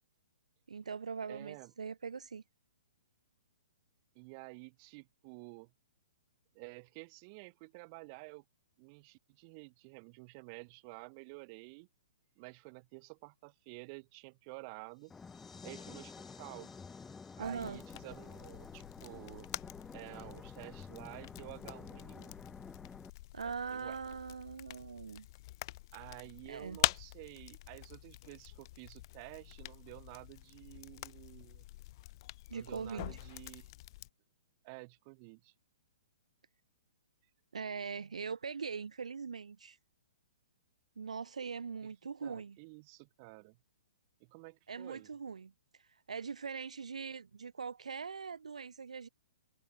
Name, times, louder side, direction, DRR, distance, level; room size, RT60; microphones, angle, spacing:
voice 1, 0.7-2.4 17.4-17.8 23.3-25.3 26.5-26.8 32.5-33.2 37.5-39.8 41.0-42.6 44.7-49.1, right 5 dB, 65° right, 1.3 m, -41 dB
voice 2, 1.3-1.7 4.1-5.7 6.5-8.4 8.8-11.9 12.4-15.1 15.6-16.7 17.4-19.5 19.9-22.4 23.4-24.0 25.9-31.6 32.5-33.7 34.6-35.5 42.2-43.6 44.2-45.1, right 31 dB, 30° right, 2.2 m, -51 dB
sound 1, 15.0-20.3, left 5 dB, 65° left, 2.8 m, -61 dB
sound 2, 15.1-23.1, left 5 dB, 10° left, 3.2 m, -50 dB
sound 3, 17.4-34.1, left 18 dB, 40° left, 3.1 m, -44 dB
figure-of-eight pair, 120°, 4 cm